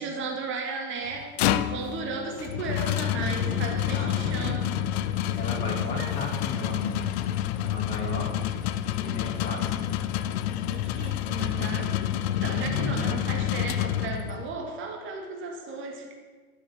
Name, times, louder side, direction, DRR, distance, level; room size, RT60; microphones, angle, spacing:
voice 1, 0.0-4.7 5.3-5.4 5.9-6.1 10.5-12.1 12.4-16.1, right 4 dB, 25° right, 2 dB, 2.1 m, -35 dB
sound 1, 1.1-14.5, left 11 dB, 45° left, 0.8 m, -28 dB
sound 2, 2.5-5.4, left 4 dB, 45° right, 5.0 m, -44 dB
voice 2, 3.1-4.8 5.3-7.0 7.6-8.4 9.0-9.9 12.4-13.0, left 2 dB, 15° left, -3 dB, 2.5 m, -35 dB
12.0 x 9.3 x 7.3 m, 1.4 s
hypercardioid pair, 110°, 45 cm